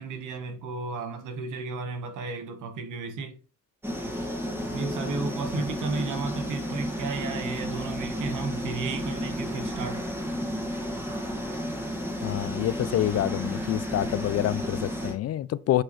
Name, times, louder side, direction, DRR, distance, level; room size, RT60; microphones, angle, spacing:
voice 1, 0.0-3.3 4.7-10.0, right 4 dB, 80° right, 1.4 m, -33 dB
sound 1, 3.8-15.1, equal, 10° right, 1.9 m, -32 dB
voice 2, 12.2-15.8, left 13 dB, 55° left, 0.4 m, -27 dB
7.8 x 4.4 x 3.1 m
cardioid pair, 90°, 30 cm